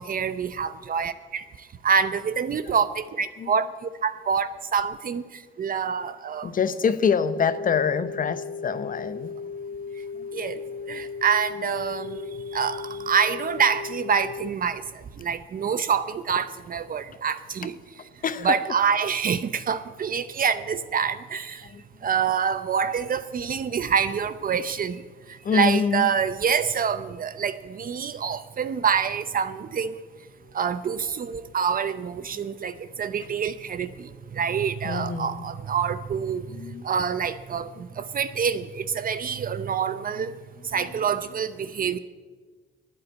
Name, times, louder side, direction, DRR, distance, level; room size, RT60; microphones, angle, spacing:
voice 1, 0.0-1.4 1.8-3.7 4.0-5.2 5.6-6.5 10.3-10.6 10.9-14.8 15.2-17.8 18.4-21.7 22.0-25.0 25.5-30.0 30.5-36.5 36.8-37.7 38.0-40.3 40.7-42.0, right 7 dB, 45° right, 12 dB, 0.7 m, -26 dB
voice 2, 6.4-9.3 10.1-10.3 18.2-18.7 21.6-21.8 25.4-26.1 32.3-32.4 34.0-34.1 34.8-35.5 36.5-36.9 37.8-37.9 40.2-40.3 40.7-40.9 41.8-42.0, left 6 dB, 45° left, 12 dB, 0.8 m, -26 dB
sound 1, 7.1-14.5, left 5 dB, 80° left, 0.7 m, -36 dB
12.5 x 8.7 x 9.3 m, 1.4 s
cardioid pair, 90°, 20 cm